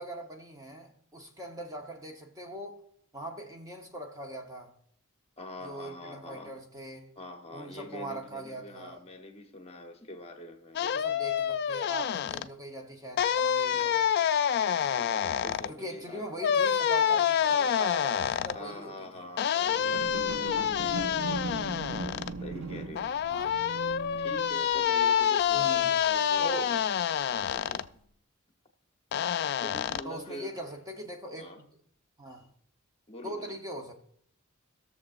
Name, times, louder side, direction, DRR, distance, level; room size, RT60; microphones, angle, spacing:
voice 1, 0.0-2.8 3.1-4.7 5.6-7.1 7.5-9.0 10.8-13.9 14.7-15.0 15.4-19.1 21.3-21.4 23.2-23.7 25.5-25.9 26.4-26.7 30.0-31.6 32.2-32.5 33.2-33.9, right 1 dB, 15° right, 0.9 m, -41 dB
voice 2, 5.4-6.5 7.2-10.8 13.7-14.1 15.0-16.2 17.6-17.7 18.5-21.4 22.4-23.1 24.2-26.8 27.3-27.9 29.3-30.5 31.4-31.6 33.1-33.6, left 1 dB, 30° left, 1.0 m, -44 dB
sound 1, 10.8-12.5 13.2-15.7 16.4-18.6 19.4-22.3 23.0-27.8 29.1-30.0, left 9 dB, 50° left, 0.3 m, -27 dB
sound 2, 19.6-27.0 27.6-27.7, right 3 dB, 85° right, 0.8 m, -40 dB
19.0 x 6.8 x 2.5 m
head